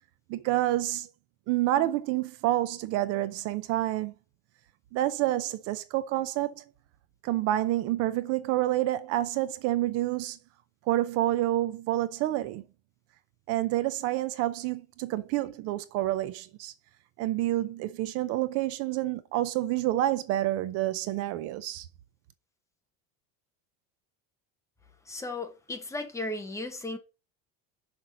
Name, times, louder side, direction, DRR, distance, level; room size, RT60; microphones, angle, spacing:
voice 1, 0.3-1.1 1.5-4.1 4.9-6.6 7.2-10.4 10.9-12.6 13.5-16.7 17.2-21.9, right 14 dB, 50° right, 0.6 m, -28 dB
voice 2, 25.1-27.0, left 2 dB, 10° left, 0.8 m, -35 dB
5.9 x 5.4 x 6.1 m
cardioid pair, 180°, 32 cm